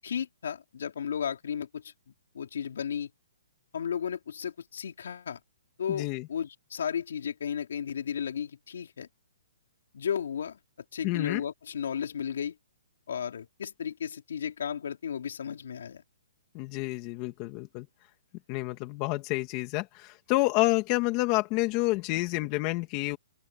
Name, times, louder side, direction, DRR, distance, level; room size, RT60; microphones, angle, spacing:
voice 1, 0.0-1.9 2.3-3.1 3.7-5.4 5.8-9.1 9.9-10.6 10.9-12.6 13.1-16.0, left 8 dB, 65° left, 4.0 m, -34 dB
voice 2, 5.9-6.3 11.0-11.4 16.5-17.9 18.5-23.2, left 20 dB, 25° left, 2.2 m, -29 dB
open air
hypercardioid pair, 170°, 0 cm